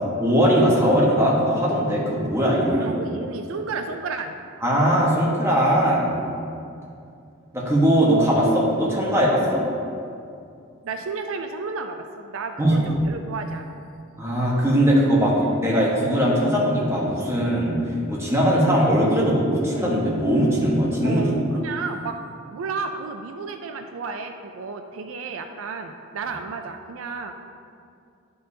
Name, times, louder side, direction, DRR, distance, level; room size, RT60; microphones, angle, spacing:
voice 1, 0.2-2.9 4.6-6.2 7.5-9.6 12.6-12.8 14.2-17.8 18.1-21.2, equal, 15° right, -5 dB, 1.3 m, -20 dB
voice 2, 2.7-4.3 10.8-13.8 21.0-22.2 22.5-27.3, right 4 dB, 75° right, 6 dB, 0.4 m, -32 dB
10.0 x 5.4 x 2.7 m, 2.4 s
head